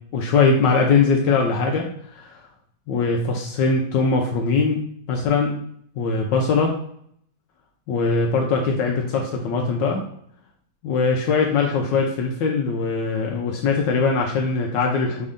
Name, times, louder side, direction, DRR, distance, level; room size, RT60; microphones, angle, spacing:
voice 1, 0.1-1.9 2.1-2.4 2.9-4.8 5.1-5.6 6.0-6.7 7.9-10.0 10.8-15.3, left 4 dB, 75° left, 1 dB, 1.2 m, -21 dB
5.3 x 2.5 x 3.5 m, 0.66 s
omnidirectional pair, 2.2 m